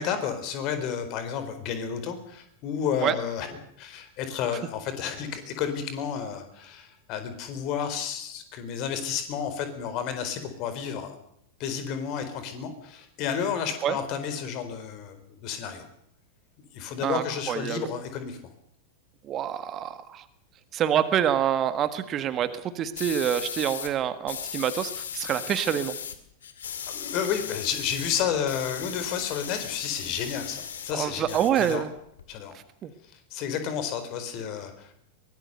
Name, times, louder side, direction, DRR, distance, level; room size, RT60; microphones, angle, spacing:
voice 1, 0.0-11.1 11.6-15.8 16.7-18.4 26.9-31.8 32.3-32.6 33.3-34.9, left 7 dB, 40° left, 9 dB, 4.2 m, -31 dB
voice 2, 17.0-17.9 19.3-20.2 20.7-22.5 22.7-25.9 30.9-31.9 32.8-32.9, right 10 dB, 30° right, 11 dB, 1.6 m, -26 dB
sound 1, 23.0-23.9 24.3-26.2 26.4-30.9 31.2-32.2, left 8 dB, 65° left, 2.2 m, -37 dB
23.0 x 19.5 x 6.7 m, 0.70 s
figure-of-eight pair, 90°, 0 cm